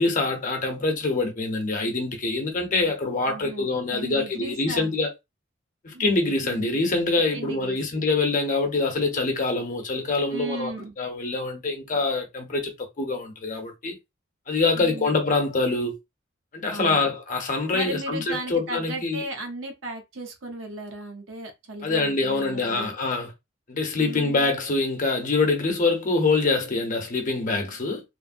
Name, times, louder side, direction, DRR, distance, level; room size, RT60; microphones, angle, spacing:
voice 1, 0.0-5.1 5.8-14.0 14.5-16.0 16.5-19.2 21.8-23.3 23.7-28.0, left 3 dB, 45° left, 0.8 m, -25 dB
voice 2, 3.3-4.9 5.9-6.1 6.4-6.8 7.3-7.8 10.3-10.9 14.7-15.2 16.7-17.1 17.7-23.0 24.0-24.5, right 2 dB, 90° right, 0.9 m, -36 dB
3.2 x 2.0 x 2.5 m
head